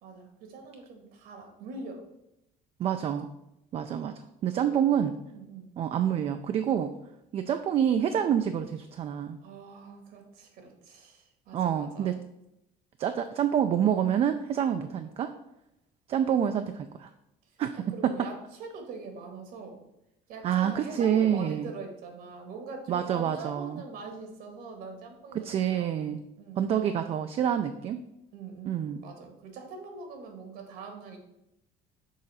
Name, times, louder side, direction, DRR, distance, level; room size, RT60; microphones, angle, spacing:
voice 1, 0.0-2.0 4.6-4.8 5.3-5.7 9.4-12.1 17.9-18.3 18.6-19.8 20.3-26.7 28.3-31.2, right 4 dB, 70° right, 4 dB, 1.6 m, -43 dB
voice 2, 2.8-3.3 3.7-4.1 4.4-5.2 5.8-6.9 7.3-9.4 11.5-12.2 13.0-15.3 16.1-17.1 17.6-18.3 20.4-21.7 22.9-23.8 25.3-26.2 26.6-28.0 28.6-29.0, right 9 dB, 40° right, 8 dB, 0.4 m, -27 dB
6.4 x 3.9 x 5.5 m, 0.86 s
cardioid pair, 150°, 16 cm